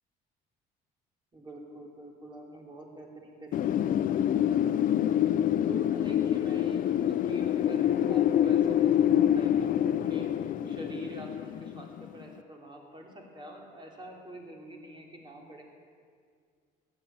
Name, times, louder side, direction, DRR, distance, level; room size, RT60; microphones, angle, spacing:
voice 1, 1.3-10.3 10.6-15.6, right 1 dB, 30° right, 0 dB, 3.3 m, -46 dB
Wind, 3.5-12.2, left 10 dB, 55° left, 0.5 m, -26 dB
16.0 x 9.8 x 8.8 m, 2.1 s
cardioid pair, 110°, 17 cm